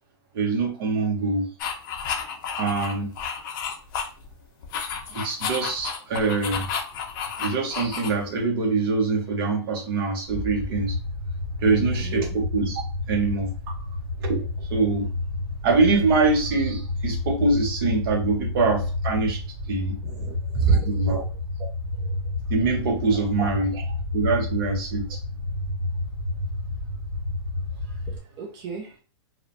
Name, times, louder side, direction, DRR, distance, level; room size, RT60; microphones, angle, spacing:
voice 1, 0.3-1.5 2.5-3.1 5.1-6.7 7.4-11.0 11.6-12.8 13.1-13.5 14.2-15.1 15.6-19.4 19.7-20.0 20.8-21.2 22.5-23.8 24.1-25.2, right 3 dB, 55° right, 2 dB, 0.9 m, -24 dB
sound 1, 1.6-4.3 4.6-8.4, left 6 dB, 45° left, 0.6 m, -31 dB
sound 2, 10.3-28.2, left 2 dB, ahead, 1.2 m, -30 dB
voice 2, 11.7-12.3 20.0-21.2 22.0-22.1 23.4-23.8 28.1-28.9, right 5 dB, 30° right, -2 dB, 0.6 m, -28 dB
3.0 x 2.1 x 2.5 m, 0.38 s
hypercardioid pair, 150°, 14 cm